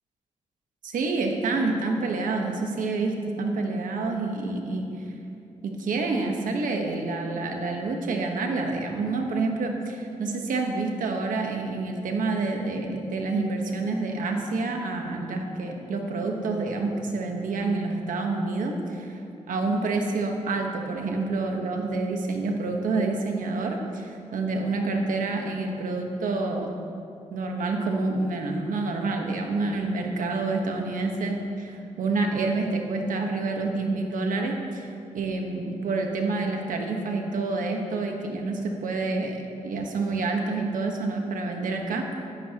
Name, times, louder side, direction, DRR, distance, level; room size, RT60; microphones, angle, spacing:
voice 1, 0.8-4.9 5.6-19.2 19.5-26.7 27.3-39.4 39.6-42.2, right 3 dB, 90° right, 2 dB, 1.3 m, -28 dB
14.5 x 13.0 x 2.9 m, 2.6 s
cardioid pair, 55°, 13 cm